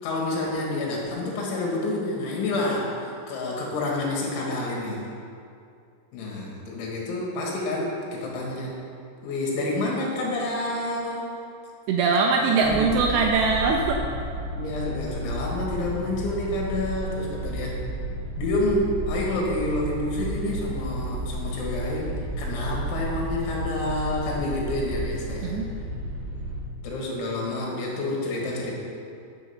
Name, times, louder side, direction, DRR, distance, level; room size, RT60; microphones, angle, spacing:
voice 1, 0.0-5.1 6.1-8.8 9.2-11.3 12.4-12.9 14.5-17.8 18.4-25.6 26.8-28.8, left 2 dB, 80° left, -2 dB, 4.1 m, -28 dB
voice 2, 11.9-14.0 25.4-25.7, right 4 dB, 85° right, 2 dB, 2.5 m, -22 dB
sound 1, 12.6-26.6, right 1 dB, 50° right, 1.5 m, -32 dB
9.8 x 6.0 x 7.1 m, 2.4 s
omnidirectional pair, 5.4 m